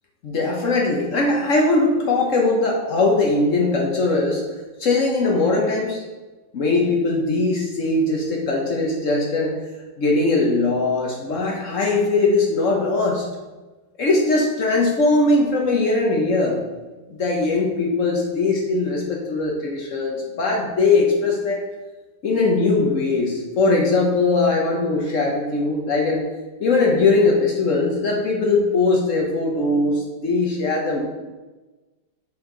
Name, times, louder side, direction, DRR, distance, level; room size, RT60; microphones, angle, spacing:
voice 1, 0.2-4.4 4.8-6.0 6.5-9.6 10.0-13.2 14.0-16.6 17.1-21.6 22.2-26.2 26.6-31.1, left 3 dB, 55° left, 0 dB, 1.0 m, -20 dB
5.8 x 4.4 x 3.8 m, 1.2 s
omnidirectional pair, 2.0 m